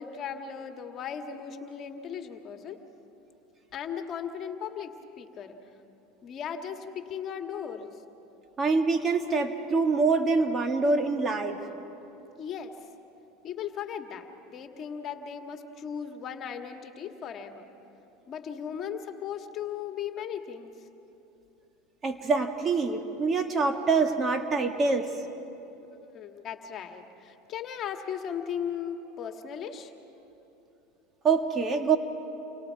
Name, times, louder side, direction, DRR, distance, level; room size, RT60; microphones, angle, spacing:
voice 1, 0.0-2.8 3.7-5.6 6.2-8.0 12.4-12.7 13.4-17.6 18.3-20.7 25.9-29.9, left 8 dB, 40° left, 5 dB, 1.7 m, -37 dB
voice 2, 8.6-11.6 22.0-25.1 31.2-32.0, right 4 dB, 30° right, 6 dB, 1.7 m, -25 dB
29.5 x 24.5 x 4.7 m, 2.9 s
supercardioid pair, 105°, 0 cm